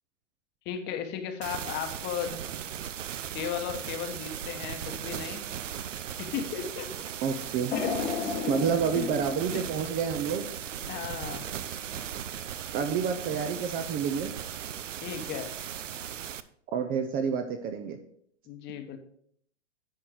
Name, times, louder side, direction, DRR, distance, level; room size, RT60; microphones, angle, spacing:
voice 1, 0.6-2.4 3.3-5.4 6.2-7.1 7.7-8.7 8.9-9.1 10.9-11.5 15.0-15.5 18.5-19.0, left 8 dB, 30° left, 7 dB, 1.0 m, -35 dB
sound 1, 1.4-16.4, right 9 dB, 85° right, 0.6 m, -38 dB
voice 2, 7.2-7.7 8.5-10.4 12.7-14.3 16.7-18.0, right 7 dB, 25° right, 7 dB, 0.6 m, -29 dB
sound 2, 7.7-10.8 11.3-11.4 12.4-12.5, left 5 dB, 70° left, 1.5 m, -35 dB
10.0 x 4.5 x 4.7 m, 0.65 s
hypercardioid pair, 125°, 36 cm